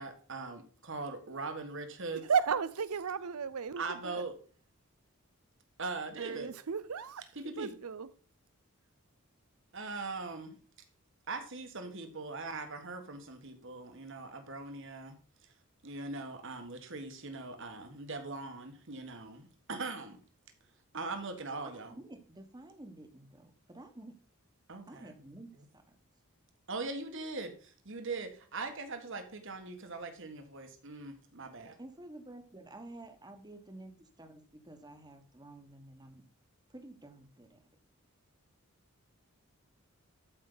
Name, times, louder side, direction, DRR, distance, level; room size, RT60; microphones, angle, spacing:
voice 1, 0.0-2.2 3.8-4.4 5.8-6.5 7.3-7.7 9.7-10.6 11.3-15.2 15.8-20.2 20.9-21.9 24.7-25.1 26.7-31.8, right 3 dB, 60° right, 1.6 m, -41 dB
voice 2, 2.2-4.2 6.2-7.2 7.6-8.1, right 6 dB, 85° right, 0.6 m, -34 dB
voice 3, 21.6-24.1 24.9-26.0 31.8-36.2 36.7-37.6, right 1 dB, 20° right, 1.3 m, -51 dB
13.0 x 5.3 x 4.0 m
head